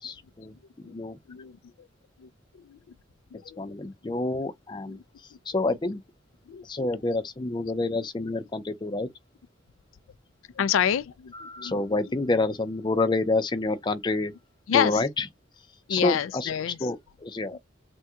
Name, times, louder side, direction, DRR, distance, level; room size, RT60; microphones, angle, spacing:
voice 1, 0.0-1.2 3.6-5.0 5.5-6.0 6.6-9.1 11.3-14.3 14.7-15.2 15.9-16.5 16.8-17.6, left 2 dB, 25° left, 0.4 m, -28 dB
voice 2, 3.3-3.9 4.9-5.0 5.6-5.7 6.5-6.7 7.0-7.2 10.6-12.1 14.7-15.1 15.9-16.9 17.5-17.6, left 9 dB, 85° left, 0.3 m, -29 dB
3.6 x 2.2 x 2.7 m
head